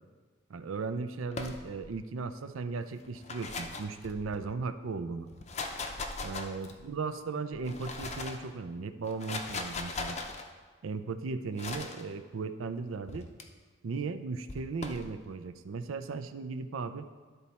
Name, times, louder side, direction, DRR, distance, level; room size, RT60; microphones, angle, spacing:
voice 1, 0.5-5.3 6.2-10.2 10.8-13.3 13.8-17.1, right 4 dB, 80° right, 10 dB, 0.5 m, -36 dB
sound 1, 1.3-2.0 3.0-4.5 5.3-6.9 7.5-8.5 9.0-10.4 11.6-12.0 13.1-13.4 14.5-15.1, left 3 dB, 35° left, 0.6 m, -39 dB
12.5 x 4.1 x 4.3 m, 1.4 s
head